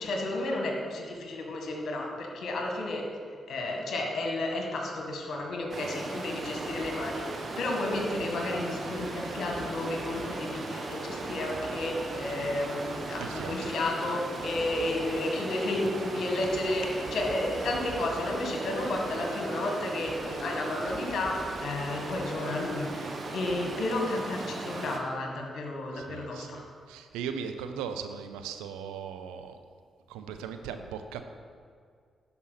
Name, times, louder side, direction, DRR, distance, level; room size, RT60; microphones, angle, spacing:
voice 1, 0.0-3.0 3.5-26.6, left 2 dB, 65° left, 1 dB, 1.8 m, -32 dB
Stream, 5.7-25.0, right 2 dB, 55° right, 1.3 m, -37 dB
voice 2, 13.2-13.7 25.9-29.6 30.1-31.2, right 7 dB, 85° right, 7 dB, 0.6 m, -38 dB
10.5 x 5.5 x 5.8 m, 2.1 s
hypercardioid pair, 40°, 0 cm